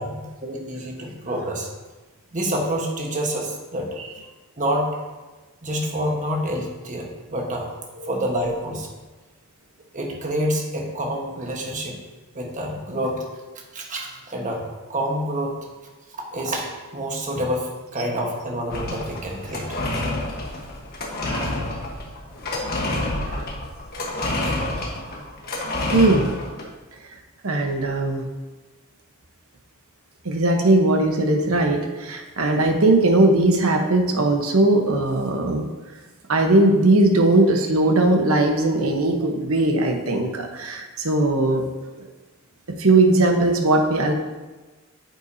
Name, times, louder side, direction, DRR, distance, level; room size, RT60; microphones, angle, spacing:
voice 1, 0.0-1.7 2.3-4.0 4.6-5.0 5.6-7.7 8.0-8.9 9.9-12.0 12.3-13.2 13.7-15.7 16.1-19.8, equal, 35° right, 0 dB, 1.3 m, -27 dB
sound 1, 18.7-26.6, left 2 dB, 45° left, 1.4 m, -28 dB
voice 2, 21.3-21.6 23.3-23.5 25.9-26.3 27.4-28.3 30.2-35.7 36.3-41.7 42.8-44.1, right 2 dB, 75° right, 4 dB, 1.1 m, -19 dB
9.1 x 8.0 x 2.8 m, 1.2 s
head